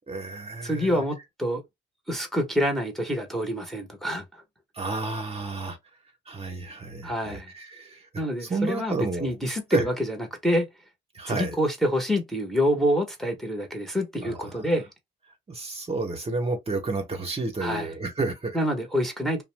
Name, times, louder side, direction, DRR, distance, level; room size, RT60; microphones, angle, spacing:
voice 1, 0.1-1.0 4.7-5.8 6.3-8.1 8.4-9.3 9.7-9.8 11.1-11.6 14.2-14.7 15.5-18.6, right 3 dB, 30° right, 0.8 m, -31 dB
voice 2, 0.6-1.6 2.1-4.2 7.0-7.5 8.2-10.2 10.4-10.7 11.3-14.9 17.6-17.9 18.5-19.4, equal, ahead, 0.8 m, -26 dB
2.5 x 2.0 x 3.1 m
cardioid pair, 90°, 20 cm